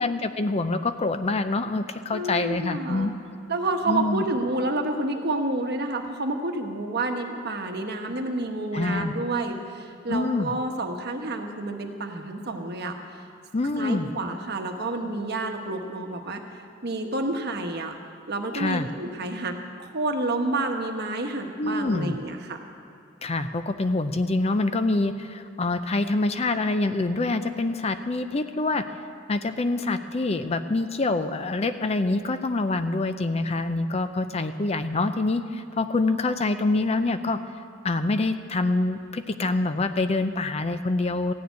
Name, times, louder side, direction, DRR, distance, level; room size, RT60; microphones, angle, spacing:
voice 1, 0.0-3.1 3.9-4.2 8.7-9.1 10.1-10.5 13.5-14.1 18.5-18.9 21.6-22.2 23.2-28.8 29.3-37.4 37.8-41.3, left 2 dB, 30° left, 10 dB, 0.5 m, -26 dB
voice 2, 2.1-3.1 3.5-13.0 13.8-16.4 16.8-17.9 18.3-19.5 19.8-22.6, right 2 dB, 55° right, 4 dB, 1.2 m, -29 dB
15.0 x 6.9 x 9.4 m, 2.5 s
head